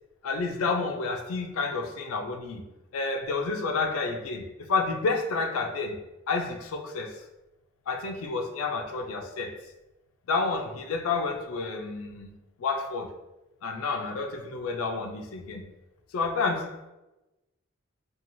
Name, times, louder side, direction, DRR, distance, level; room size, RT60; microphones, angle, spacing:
voice 1, 0.2-2.6 2.9-6.0 6.3-7.2 7.9-9.6 10.3-12.3 12.6-13.1 13.6-15.6 16.1-16.9, left 4 dB, 80° left, 4 dB, 0.4 m, -30 dB
2.9 x 2.3 x 2.6 m, 0.99 s
head